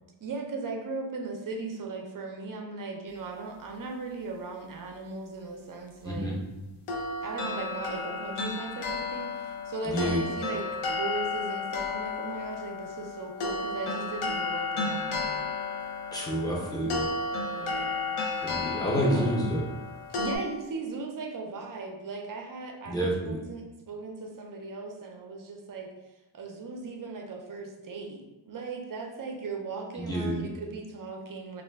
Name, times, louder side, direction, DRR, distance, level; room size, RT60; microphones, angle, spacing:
voice 1, 0.2-6.3 7.2-15.4 16.4-16.8 17.5-18.5 18.9-19.3 20.2-25.9 26.3-31.6, right 3 dB, 45° right, 2 dB, 0.4 m, -38 dB
voice 2, 6.0-6.4 9.8-10.2 16.1-17.0 18.4-19.7 22.9-23.4 29.9-30.4, right 1 dB, 10° left, -4 dB, 0.6 m, -29 dB
sound 1, 6.9-20.4, left 3 dB, 85° left, 0.6 m, -33 dB
2.4 x 2.1 x 3.3 m, 1.0 s
wide cardioid pair, 110°, 49 cm